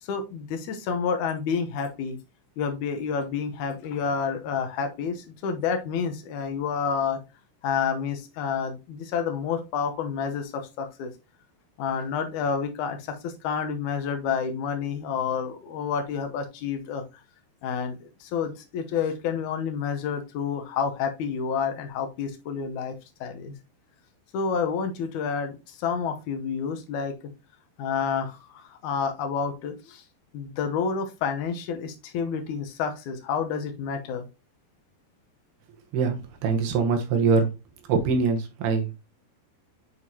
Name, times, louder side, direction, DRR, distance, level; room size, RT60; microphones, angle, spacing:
voice 1, 0.0-2.2 2.6-7.2 7.6-11.1 11.8-17.0 17.6-22.9 23.2-23.5 24.3-27.1 27.8-30.0 30.3-34.3, left 6 dB, 70° left, 6 dB, 2.0 m, -29 dB
voice 2, 35.9-37.5 37.9-38.9, right 5 dB, 90° right, 4 dB, 3.1 m, -23 dB
8.3 x 4.6 x 2.8 m, 0.27 s
omnidirectional pair, 4.4 m